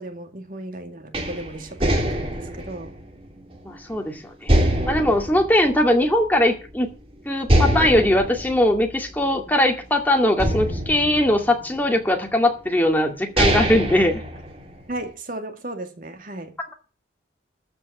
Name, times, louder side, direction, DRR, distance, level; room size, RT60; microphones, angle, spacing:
voice 1, 0.0-3.0 14.9-16.6, right 1 dB, 50° right, 2.1 m, -35 dB
sound 1, 1.1-3.9 4.5-6.4 6.8-6.9 7.4-9.8 10.4-12.0 12.7-12.8 13.2-15.0, right 1 dB, 30° right, 2.7 m, -24 dB
voice 2, 3.6-4.5 4.8-6.9 7.3-14.2, left 1 dB, 10° left, 2.2 m, -20 dB
13.5 x 5.5 x 8.4 m
head